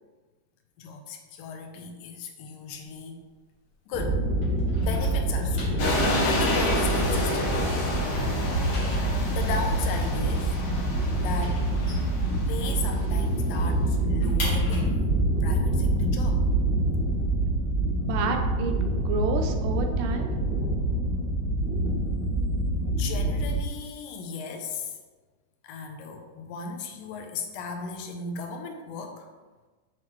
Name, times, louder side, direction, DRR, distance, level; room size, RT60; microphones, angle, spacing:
voice 1, 0.8-3.2 3.9-4.3 4.8-7.6 9.3-10.6 11.2-11.7 12.5-15.2 15.4-16.4 22.9-25.0 25.6-29.3, left 4 dB, 80° left, 4 dB, 2.3 m, -36 dB
sound 1, 2.6-4.1 4.4-7.6 7.9-12.9 13.2-13.3 13.6-17.3, left 2 dB, 40° left, 2.0 m, -42 dB
sound 2, 3.9-23.6, right 1 dB, 55° right, 2.4 m, -26 dB
sound 3, 5.8-12.9, left 1 dB, 60° left, 1.6 m, -30 dB
voice 2, 18.0-20.3, right 3 dB, 80° right, 5 dB, 2.1 m, -30 dB
7.8 x 4.6 x 3.0 m, 1.3 s
omnidirectional pair, 3.9 m